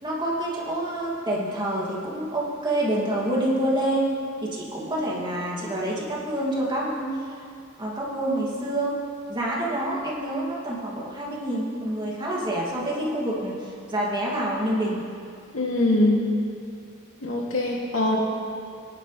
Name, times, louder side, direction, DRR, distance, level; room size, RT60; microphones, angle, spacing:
voice 1, 0.0-4.1 4.4-7.2 7.8-9.0 9.3-15.0, right 1 dB, 25° right, -5 dB, 2.5 m, -27 dB
voice 2, 15.5-16.2 17.2-18.2, left 1 dB, 85° left, -3 dB, 2.7 m, -22 dB
21.5 x 11.5 x 3.4 m, 2.4 s
head